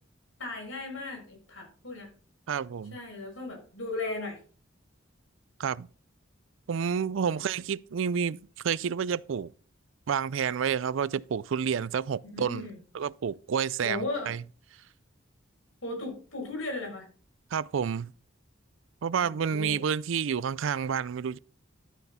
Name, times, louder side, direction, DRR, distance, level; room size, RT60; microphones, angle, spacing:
voice 1, 0.4-2.1 2.9-4.4 7.3-7.6 12.3-12.8 13.8-14.3 15.8-17.1 19.2-19.8, left 2 dB, 80° left, 6.6 m, -36 dB
voice 2, 2.5-3.0 5.6-5.9 6.7-9.5 10.1-12.7 12.9-14.4 17.5-18.1 19.0-21.4, right 7 dB, 65° right, 0.4 m, -29 dB
12.5 x 8.0 x 4.2 m
head